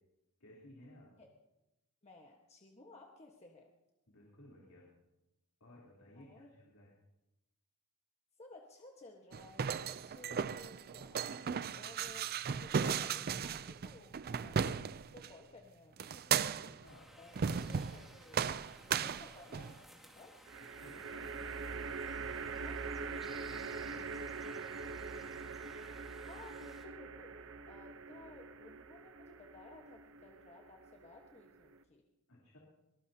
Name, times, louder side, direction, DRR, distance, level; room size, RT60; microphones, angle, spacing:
voice 1, 0.4-1.1 4.1-4.9 5.6-6.9 16.5-17.1 20.6-25.4 32.3-32.6, left 1 dB, 70° left, -4 dB, 3.6 m, -59 dB
voice 2, 2.0-3.7 6.1-6.5 8.4-12.3 12.6-16.8 17.2-18.4 18.8-20.5 22.6-22.8 26.2-32.0, left 2 dB, 30° left, 1 dB, 1.3 m, -57 dB
sound 1, 9.3-15.3 16.0-16.8 17.3-18.0 18.3-19.8, right 7 dB, 45° right, 0.4 m, -36 dB
sound 2, 16.8-26.8, equal, ahead, 2.4 m, -59 dB
sound 3, 17.3-18.0 20.5-31.8, right 5 dB, 65° right, 0.9 m, -44 dB
23.0 x 20.0 x 2.9 m, 0.95 s
head